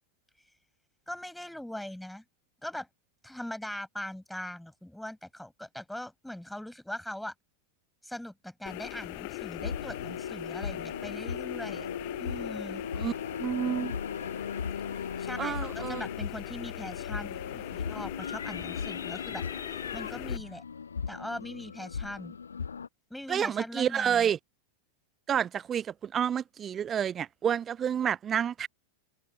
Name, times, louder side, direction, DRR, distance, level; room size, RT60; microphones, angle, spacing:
voice 1, 1.1-2.2 2.6-2.9 3.2-7.3 8.0-11.9 12.2-12.8 15.2-19.4 19.7-20.6 21.1-22.4 23.1-24.3, left 1 dB, ahead, 6.2 m, -41 dB
sound 1, 8.7-20.4, left 28 dB, 45° left, 0.7 m, -41 dB
sound 2, 9.6-22.9, left 6 dB, 70° left, 1.5 m, -37 dB
voice 2, 13.4-13.9 15.4-16.0 23.3-24.4 25.3-28.7, right 8 dB, 25° right, 0.6 m, -29 dB
open air
figure-of-eight pair, 90°, 0 cm